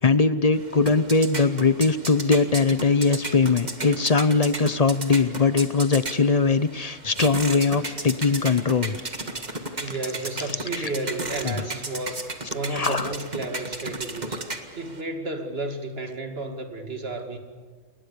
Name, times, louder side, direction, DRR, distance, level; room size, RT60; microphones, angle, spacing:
voice 1, 0.0-9.0 10.8-10.9 11.4-11.6 12.7-13.1, left 4 dB, 35° left, 14 dB, 0.7 m, -21 dB
sound 1, 0.5-15.0, right 2 dB, 35° right, 1.9 m, -35 dB
voice 2, 9.8-12.3 12.5-14.4 14.8-17.4, right 2 dB, 50° right, 5 dB, 2.7 m, -32 dB
29.0 x 21.0 x 7.0 m, 1.4 s
omnidirectional pair, 1.3 m